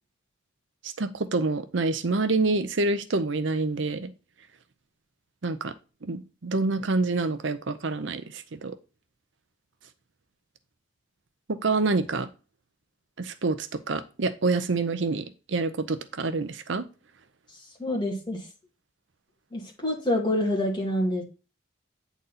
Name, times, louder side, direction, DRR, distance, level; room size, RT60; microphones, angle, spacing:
voice 1, 0.8-4.1 5.4-5.7 6.0-8.8 11.5-12.3 13.2-16.8, right 3 dB, 65° right, 0.6 m, -27 dB
voice 2, 17.8-18.4 19.5-21.2, left 1 dB, 20° left, 2.1 m, -27 dB
9.1 x 4.1 x 4.1 m
head